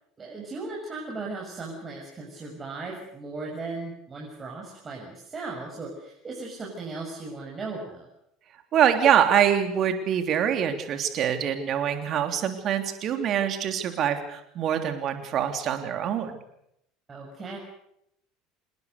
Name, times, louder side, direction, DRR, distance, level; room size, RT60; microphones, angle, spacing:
voice 1, 0.2-8.1 17.1-17.6, right 3 dB, 25° right, -2 dB, 6.6 m, -37 dB
voice 2, 8.7-16.4, right 9 dB, 45° right, 7 dB, 3.4 m, -24 dB
27.0 x 20.5 x 6.8 m, 0.77 s
figure-of-eight pair, 65°, 0 cm